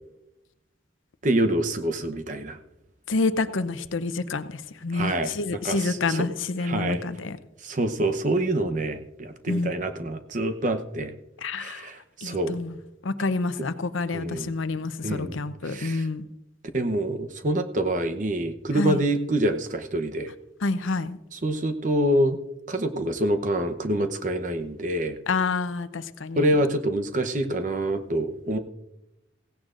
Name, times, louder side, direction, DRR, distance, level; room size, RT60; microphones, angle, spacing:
voice 1, 1.2-2.6 4.9-6.2 6.6-7.0 7.6-11.1 11.6-12.6 14.1-14.5 15.0-15.4 15.6-16.1 16.7-20.3 21.3-22.4 22.7-25.2 26.4-28.6, right 1 dB, 40° right, 8 dB, 0.8 m, -26 dB
voice 2, 3.1-7.4 9.5-9.7 11.4-11.9 12.2-12.8 13.0-16.2 18.7-19.0 20.6-21.2 25.3-26.5, left 3 dB, 85° left, 12 dB, 0.7 m, -28 dB
16.0 x 16.0 x 2.5 m, 0.93 s
head